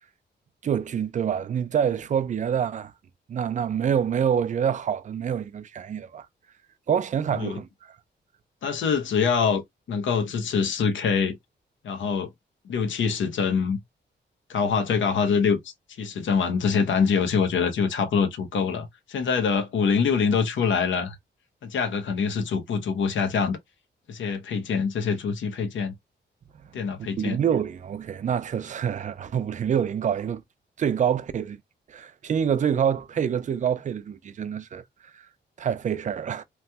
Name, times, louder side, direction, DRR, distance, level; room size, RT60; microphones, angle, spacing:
voice 1, 0.6-2.9 3.3-6.3 6.9-7.7 27.2-30.4 30.8-31.6 31.9-34.8 35.6-36.4, right 8 dB, 40° right, 0.4 m, -26 dB
voice 2, 8.6-9.6 9.9-11.4 11.8-12.3 12.6-13.8 14.5-15.6 16.0-21.2 21.6-23.6 24.1-25.9 26.7-27.4, left 6 dB, 80° left, 0.8 m, -24 dB
3.1 x 2.2 x 2.8 m
wide cardioid pair, 150°, 19 cm